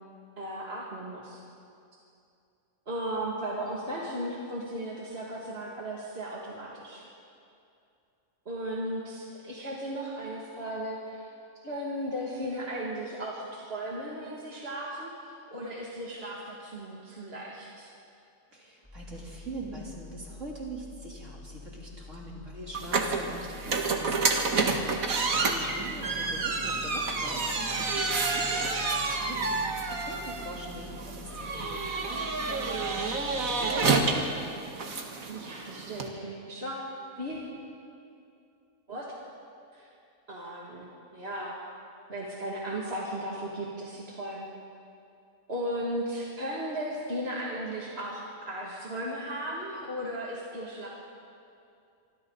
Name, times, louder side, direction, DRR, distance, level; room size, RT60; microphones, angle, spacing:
voice 1, 0.4-1.4 2.9-7.0 8.5-11.3 11.6-17.9 25.4-25.7 35.3-37.5 38.9-39.1 39.7-39.9 40.3-41.6 42.1-44.5 45.5-50.9, right 1 dB, 50° right, -5 dB, 2.7 m, -36 dB
voice 2, 18.5-24.4 25.4-34.2, right 1 dB, 65° right, -4 dB, 4.0 m, -43 dB
sound 1, 18.8-34.6, left 3 dB, 10° left, 3.7 m, -48 dB
sound 2, 22.7-36.1, right 4 dB, 85° right, 2.0 m, -29 dB
26.5 x 24.5 x 4.1 m, 2.6 s
omnidirectional pair, 1.4 m